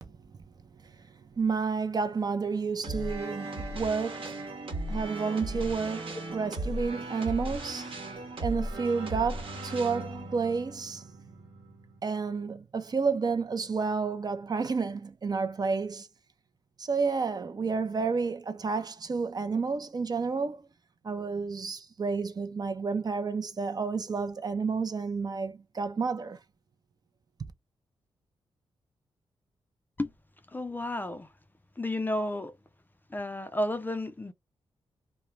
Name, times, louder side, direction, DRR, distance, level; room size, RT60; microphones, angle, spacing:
voice 1, 1.1-4.4 4.7-11.1 12.0-16.1 16.8-20.6 21.0-26.4, right 5 dB, 40° right, 0.5 m, -31 dB
sound 1, 2.8-12.0, right 1 dB, 65° right, 1.1 m, -37 dB
voice 2, 30.5-31.3 31.8-32.5 33.1-34.3, left 1 dB, 20° left, 0.4 m, -32 dB
2.3 x 2.0 x 3.1 m
cardioid pair, 60°, 10 cm